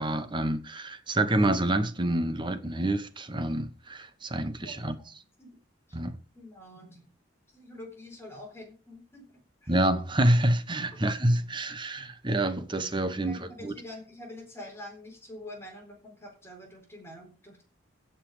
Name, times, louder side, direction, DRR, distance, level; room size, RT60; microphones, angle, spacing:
voice 1, 0.0-5.0 5.9-6.2 9.7-13.7, right 1 dB, 25° right, 1.1 m, -27 dB
voice 2, 4.6-5.1 5.4-5.6 5.9-6.0 6.3-7.1 7.5-9.7 10.9-11.0 13.2-17.6, left 1 dB, 15° left, 4.1 m, -46 dB
16.0 x 5.7 x 5.0 m
head